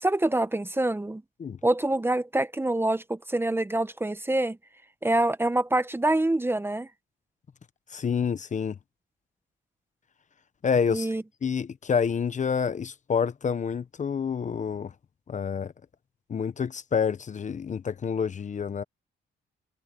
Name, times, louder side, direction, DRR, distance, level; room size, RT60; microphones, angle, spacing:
voice 1, 0.0-1.2 1.6-4.6 5.0-6.9 10.9-11.2, right 1 dB, 10° right, 1.0 m, -26 dB
voice 2, 7.9-8.8 10.6-11.1 11.4-14.9 15.3-15.7 16.3-18.8, left 6 dB, 40° left, 0.9 m, -28 dB
cardioid pair, 90°, 20 cm